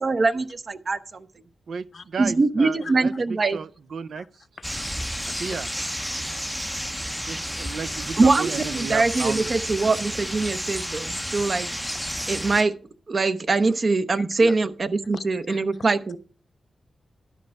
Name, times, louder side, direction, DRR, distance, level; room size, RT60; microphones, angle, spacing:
voice 1, 0.0-1.3 2.2-3.6 8.2-11.7 12.3-12.7 13.1-16.2, right 3 dB, 50° right, 0.7 m, -23 dB
voice 2, 1.7-4.3 5.4-5.7 7.2-9.5, right 6 dB, 75° right, 0.4 m, -33 dB
voice 3, 2.6-2.9 4.1-4.3 4.6-5.9 7.4-7.6 14.2-14.6 15.1-15.6, left 5 dB, 55° left, 0.7 m, -41 dB
sound 1, 4.6-12.6, equal, ahead, 0.5 m, -31 dB
12.0 x 5.2 x 5.7 m
cardioid pair, 80°, 0 cm